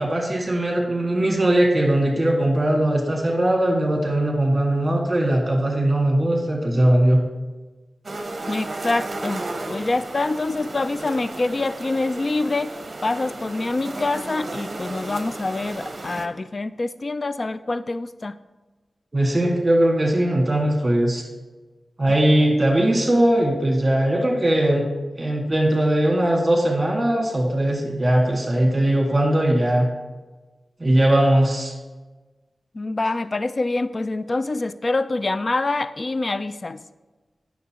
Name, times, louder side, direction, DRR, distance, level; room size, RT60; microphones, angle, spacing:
voice 1, 0.0-7.2 19.1-21.2 22.0-24.9 25.2-29.9 30.8-31.7, right 1 dB, 25° right, 0 dB, 1.6 m, -20 dB
sound 1, 8.0-16.3, right 2 dB, 50° right, 0.7 m, -34 dB
voice 2, 8.5-12.8 13.0-18.4 32.7-36.8, left 2 dB, 45° left, 13 dB, 0.3 m, -25 dB
9.2 x 6.2 x 2.9 m, 1.2 s
wide cardioid pair, 85°, 0 cm